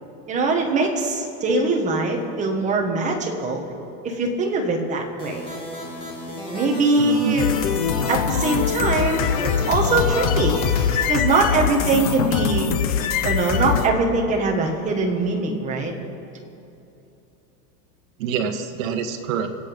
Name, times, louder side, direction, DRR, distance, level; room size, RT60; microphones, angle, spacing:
voice 1, 0.3-3.6 4.0-5.4 6.5-7.5 8.1-10.6 11.1-12.7 13.2-15.9, right 3 dB, 15° right, 1 dB, 1.4 m, -22 dB
sound 1, 5.2-11.1, left 1 dB, 10° left, 2.1 m, -34 dB
voice 2, 7.0-7.4 18.2-19.5, right 7 dB, 60° right, 6 dB, 1.5 m, -26 dB
sound 2, 7.4-13.9, left 7 dB, 30° left, 0.4 m, -23 dB
25.0 x 8.4 x 5.2 m, 2.8 s
supercardioid pair, 165°, 46 cm